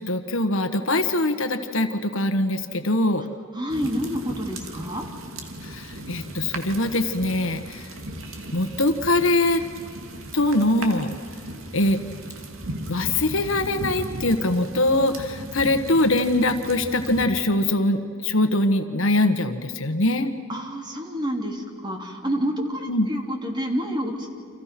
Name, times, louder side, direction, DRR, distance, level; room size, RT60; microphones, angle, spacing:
voice 1, 0.0-3.2 5.6-7.9 8.5-9.6 10.3-11.1 11.7-12.0 12.9-20.3 22.9-23.1, left 1 dB, 70° left, 8 dB, 1.5 m, -22 dB
voice 2, 3.5-5.1 20.5-24.3, equal, 20° right, 2 dB, 3.0 m, -28 dB
sound 1, 3.7-17.3, right 1 dB, 70° right, 2.5 m, -37 dB
30.0 x 27.0 x 6.0 m, 2.2 s
head